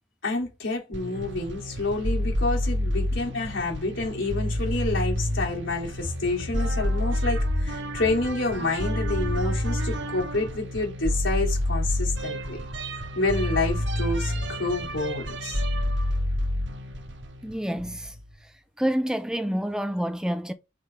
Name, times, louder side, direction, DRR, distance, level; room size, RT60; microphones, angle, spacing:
voice 1, 0.2-12.6 13.1-15.6, left 2 dB, 90° left, 3.6 m, -28 dB
sound 1, 0.9-18.2, equal, 70° right, 1.3 m, -28 dB
voice 2, 17.4-18.2 18.4-20.5, equal, 5° right, 0.4 m, -28 dB
6.4 x 3.8 x 4.7 m
head